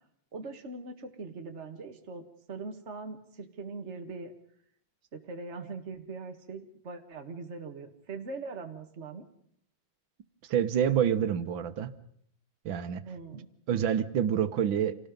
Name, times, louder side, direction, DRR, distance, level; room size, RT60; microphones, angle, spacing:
voice 1, 0.3-2.2 2.5-4.3 5.1-9.2 13.1-13.5, right 4 dB, 35° right, 5 dB, 2.0 m, -41 dB
voice 2, 10.5-11.9 12.7-13.0 13.7-15.0, right 9 dB, 90° right, 12 dB, 1.9 m, -27 dB
27.5 x 18.0 x 5.2 m, 0.65 s
omnidirectional pair, 2.1 m